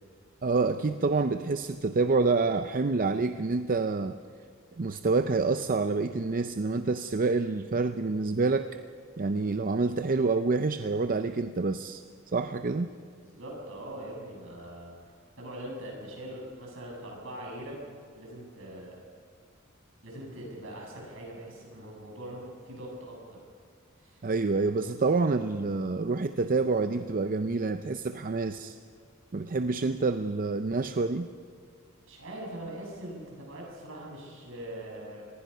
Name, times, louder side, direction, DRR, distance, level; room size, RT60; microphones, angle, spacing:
voice 1, 0.4-4.2 4.8-8.7 9.2-12.0 12.3-12.9 24.2-28.8 29.3-31.3, right 3 dB, 40° right, 10 dB, 0.6 m, -27 dB
voice 2, 13.2-17.8 18.1-19.0 20.0-23.2 24.0-24.2 32.1-35.3, right 1 dB, 65° right, -1 dB, 7.4 m, -42 dB
26.0 x 20.0 x 5.6 m, 2.1 s
head